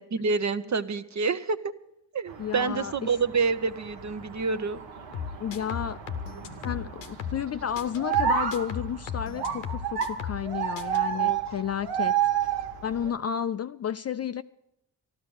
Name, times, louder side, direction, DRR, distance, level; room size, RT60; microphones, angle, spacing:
voice 1, 0.0-1.7 2.1-4.8 11.1-11.4, right 4 dB, 40° right, 0.9 m, -28 dB
sound 1, 2.3-13.1, right 9 dB, 75° right, 1.3 m, -31 dB
voice 2, 2.4-2.9 5.4-6.0 6.6-12.2 12.8-14.4, left 8 dB, 35° left, 0.4 m, -32 dB
sound 2, 5.1-7.5 7.8-10.5 10.8-11.0, left 7 dB, 85° left, 1.0 m, -36 dB
13.0 x 12.5 x 6.3 m
hypercardioid pair, 45°, 45 cm